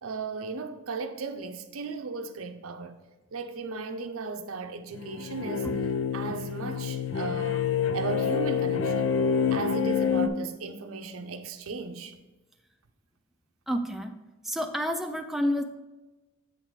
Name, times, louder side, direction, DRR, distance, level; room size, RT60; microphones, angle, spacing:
voice 1, 0.0-3.0 3.3-9.2 9.5-12.1, right 4 dB, 90° right, 0.6 m, -36 dB
sound 1, 4.9-10.3, left 6 dB, 75° left, 0.5 m, -27 dB
voice 2, 13.7-14.1 14.4-15.6, equal, ahead, 0.3 m, -29 dB
8.0 x 4.0 x 4.7 m
head